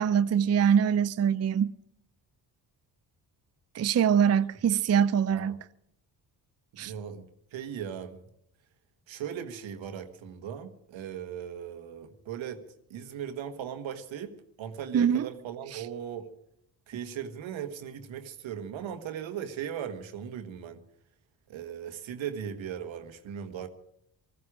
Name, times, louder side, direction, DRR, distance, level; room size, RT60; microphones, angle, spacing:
voice 1, 0.0-1.7 3.7-5.6 6.8-6.9 14.9-15.3 15.7-15.8, right 8 dB, 35° right, 0.5 m, -24 dB
voice 2, 6.7-8.2 9.1-12.6 12.9-16.3 16.9-20.8 21.5-23.7, right 8 dB, 75° right, 1.7 m, -38 dB
20.0 x 14.5 x 4.9 m
supercardioid pair, 50°, 47 cm